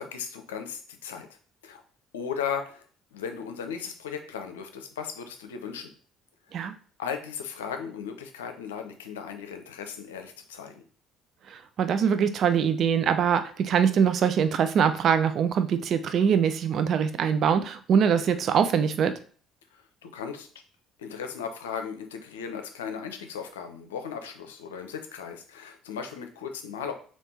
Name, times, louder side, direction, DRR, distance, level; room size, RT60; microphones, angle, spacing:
voice 1, 0.0-1.4 1.6-1.8 2.1-2.9 3.1-5.9 6.5-6.7 7.0-10.8 19.7-19.8 20.1-20.5 21.0-26.9, left 7 dB, 85° left, 6 dB, 0.6 m, -36 dB
voice 2, 11.5-19.1, right 7 dB, 55° right, 9 dB, 0.5 m, -23 dB
3.5 x 3.0 x 4.1 m, 0.42 s
hypercardioid pair, 55°, 0 cm